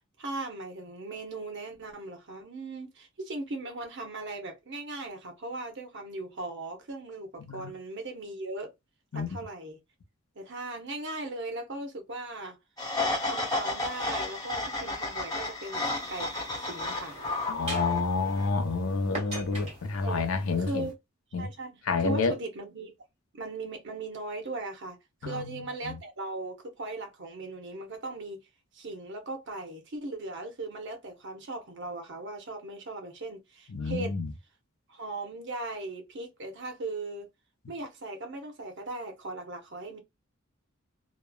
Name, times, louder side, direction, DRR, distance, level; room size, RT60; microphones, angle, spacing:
voice 1, 0.2-8.7 9.1-9.8 10.4-12.6 13.2-17.2 20.0-20.9 21.4-22.9 23.3-25.0 25.2-28.4 28.7-34.2 34.9-37.3 37.7-40.0, right 2 dB, 55° right, 0.8 m, -38 dB
voice 2, 7.4-7.7 9.1-9.3 17.5-20.9 21.3-21.5 21.9-22.3 25.2-26.0 33.7-34.3, left 4 dB, 75° left, 0.6 m, -29 dB
sound 1, 12.8-18.5, left 2 dB, 20° left, 1.0 m, -32 dB
sound 2, 15.7-20.9, right 2 dB, 30° right, 1.3 m, -43 dB
3.0 x 2.1 x 2.2 m
head